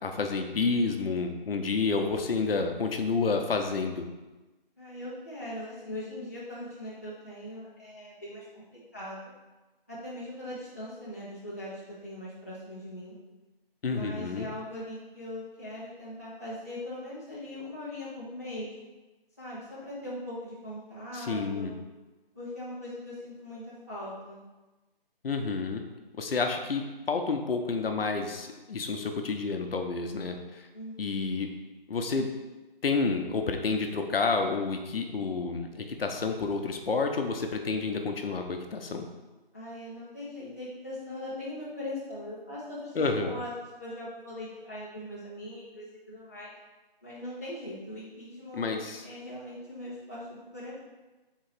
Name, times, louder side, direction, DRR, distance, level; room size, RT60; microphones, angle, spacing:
voice 1, 0.0-4.1 13.8-14.5 21.1-21.7 25.2-25.8 26.2-30.7 31.0-31.5 31.9-32.3 32.8-39.1 43.0-43.4 48.5-49.0, left 4 dB, 70° left, 5 dB, 0.7 m, -29 dB
voice 2, 4.8-9.3 9.9-13.1 13.8-18.7 19.4-21.8 22.3-24.4 30.7-31.3 39.5-43.5 43.8-46.5 47.0-50.7, left 1 dB, 15° left, -9 dB, 0.5 m, -40 dB
3.7 x 2.9 x 4.5 m, 1.1 s
figure-of-eight pair, 165°, 30 cm